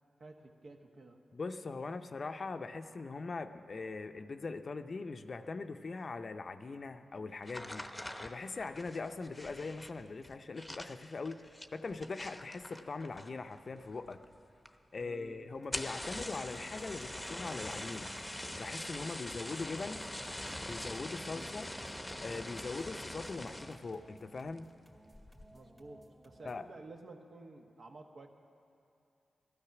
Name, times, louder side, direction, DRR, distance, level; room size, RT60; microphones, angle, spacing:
voice 1, 0.2-1.2 15.0-15.4 21.3-21.5 25.5-28.3, right 2 dB, 60° right, 3 dB, 1.2 m, -52 dB
voice 2, 1.3-7.9 8.2-14.2 14.9-18.1 18.6-20.0 20.6-21.7 22.2-24.7 26.4-26.7, left 3 dB, 50° left, 9 dB, 0.6 m, -41 dB
sound 1, 7.4-13.6 13.8-14.4 14.7-14.8 15.0-15.1 15.6-23.9 24.3-24.7 25.1-25.5, left 1 dB, 10° left, 0.8 m, -43 dB
sound 2, 15.6-26.7, right 1 dB, 30° right, 2.1 m, -60 dB
14.0 x 12.0 x 5.9 m, 2.6 s
cardioid pair, 60°, 0 cm